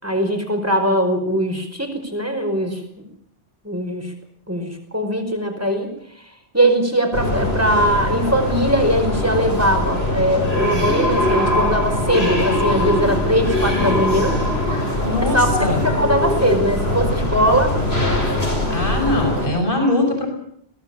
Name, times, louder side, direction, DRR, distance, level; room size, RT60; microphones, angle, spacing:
voice 1, 0.0-2.8 3.6-4.1 4.5-5.9 6.5-14.4 15.2-17.8, equal, 15° right, 5 dB, 5.1 m, -20 dB
sound 1, 7.1-19.5, left 1 dB, 70° left, 6.3 m, -21 dB
voice 2, 15.0-15.8 18.7-20.3, left 2 dB, 55° left, 3 dB, 6.5 m, -21 dB
22.5 x 18.0 x 8.8 m, 0.66 s
omnidirectional pair, 1.1 m